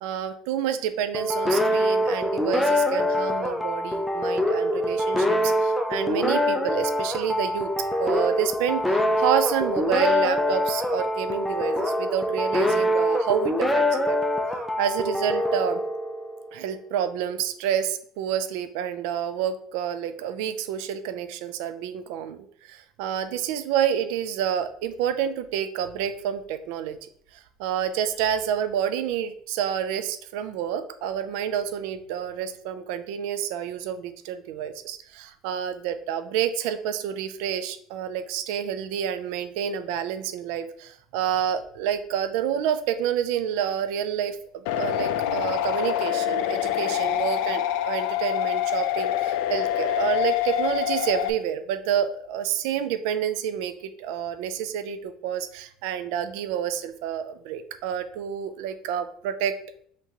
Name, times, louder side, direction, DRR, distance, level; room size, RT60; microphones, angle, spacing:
voice 1, 0.0-7.7 8.0-14.2 14.8-15.8 16.5-27.0 27.6-59.5, right 9 dB, 75° right, 10 dB, 0.4 m, -29 dB
sound 1, 1.1-16.5, left 1 dB, 5° left, 0.4 m, -24 dB
sound 2, 44.7-51.3, left 11 dB, 80° left, 0.4 m, -26 dB
5.7 x 3.0 x 2.9 m, 0.63 s
cardioid pair, 170°, 0 cm